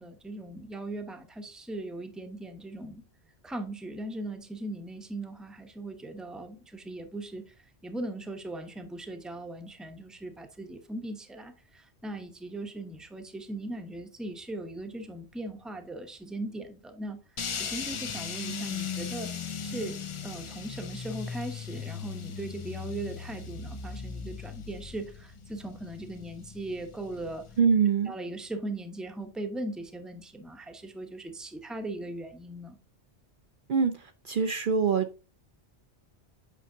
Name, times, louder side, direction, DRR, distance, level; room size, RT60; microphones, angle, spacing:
voice 1, 0.0-3.0 3.4-7.5 7.8-17.2 17.6-19.3 19.6-27.4 28.1-32.8, right 1 dB, ahead, 0.8 m, -39 dB
sound 1, 17.4-27.6, left 6 dB, 40° left, 0.4 m, -38 dB
voice 2, 27.6-28.1 33.7-35.2, right 6 dB, 55° right, 0.7 m, -25 dB
8.3 x 5.5 x 2.7 m
omnidirectional pair, 1.1 m